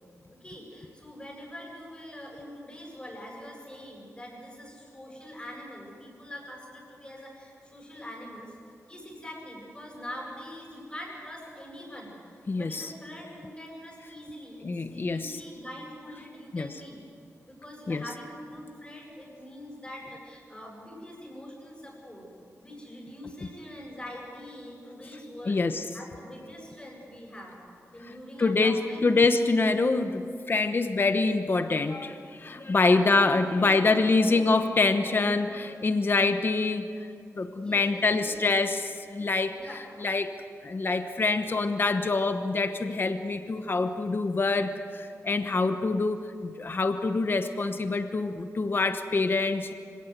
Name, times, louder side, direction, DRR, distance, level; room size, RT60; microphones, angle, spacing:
voice 1, 0.3-8.6 8.9-12.2 12.6-17.0 17.5-22.3 22.6-25.6 25.9-27.6 27.9-29.3 32.8-34.4 35.0-35.3 37.5-38.5 39.5-39.8, left 1 dB, 20° left, -3 dB, 7.7 m, -44 dB
voice 2, 12.5-12.9 14.6-15.4 16.5-16.7 17.9-18.0 25.5-25.8 28.4-36.9 37.3-39.5 40.0-40.3 40.6-49.7, left 3 dB, 40° left, 8 dB, 1.0 m, -25 dB
26.0 x 17.0 x 8.1 m, 2.3 s
wide cardioid pair, 130°, 6 cm